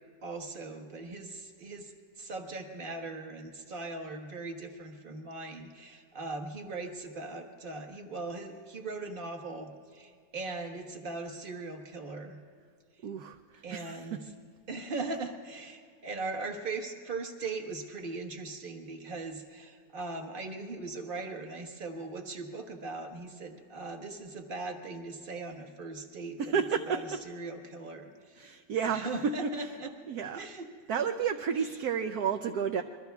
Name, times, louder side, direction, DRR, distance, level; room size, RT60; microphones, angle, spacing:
voice 1, 0.2-12.4 13.6-14.2 14.7-28.6 28.9-29.9 30.3-30.7 31.6-31.7, right 3 dB, 30° right, 3 dB, 1.3 m, -39 dB
voice 2, 13.0-14.2 26.4-27.0 28.4-29.7 30.1-30.5 30.9-32.8, right 6 dB, 70° right, 6 dB, 1.0 m, -31 dB
27.0 x 22.5 x 2.3 m, 2.1 s
omnidirectional pair, 2.0 m